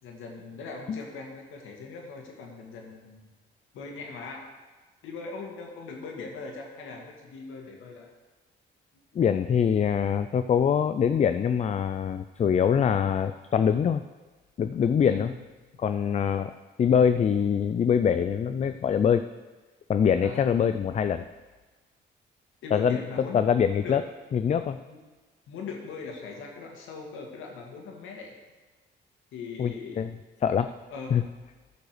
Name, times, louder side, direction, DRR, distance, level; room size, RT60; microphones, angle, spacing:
voice 1, 0.0-3.3 3.7-4.5 5.0-8.1 15.0-15.4 20.2-20.5 22.6-23.4 23.8-24.0 24.9-25.0 25.5-28.3 29.3-30.0 30.9-31.3, left 4 dB, 85° left, 1 dB, 2.0 m, -40 dB
voice 2, 9.2-14.0 14.6-15.3 15.8-16.5 16.8-19.2 19.9-21.3 22.7-23.0 23.3-24.0 24.3-24.8 29.6-30.1 30.4-30.7 31.1-31.2, left 7 dB, 35° left, 10 dB, 0.4 m, -24 dB
10.5 x 5.3 x 6.7 m, 1.3 s
cardioid pair, 90°, 20 cm